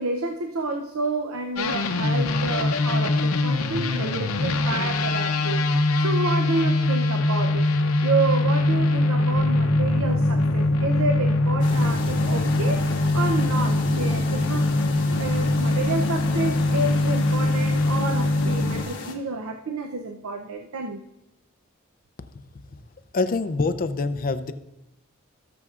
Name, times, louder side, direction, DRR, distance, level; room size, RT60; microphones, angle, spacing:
voice 1, 0.0-5.7 6.0-7.7 8.0-21.0, right 3 dB, 75° right, 4 dB, 0.6 m, -29 dB
sound 1, 1.6-18.8, left 2 dB, 80° left, 0.7 m, -22 dB
sound 2, 9.4-15.6, equal, 25° left, 3.9 m, -35 dB
sound 3, 11.6-19.1, left 4 dB, 60° left, 1.3 m, -36 dB
voice 2, 23.1-24.5, left 3 dB, 45° left, 11 dB, 0.5 m, -25 dB
18.5 x 6.8 x 2.4 m, 0.91 s
head